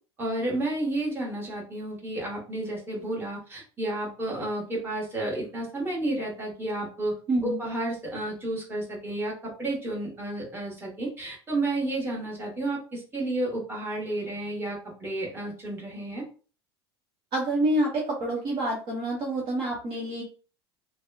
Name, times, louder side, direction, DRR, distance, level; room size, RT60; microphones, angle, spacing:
voice 1, 0.2-7.1 7.4-16.2, right 2 dB, 15° right, -3 dB, 1.2 m, -31 dB
voice 2, 7.3-7.6 17.3-20.2, right 1 dB, 35° right, -3 dB, 0.8 m, -27 dB
2.8 x 2.3 x 2.3 m, 0.38 s
figure-of-eight pair, 75°, 14 cm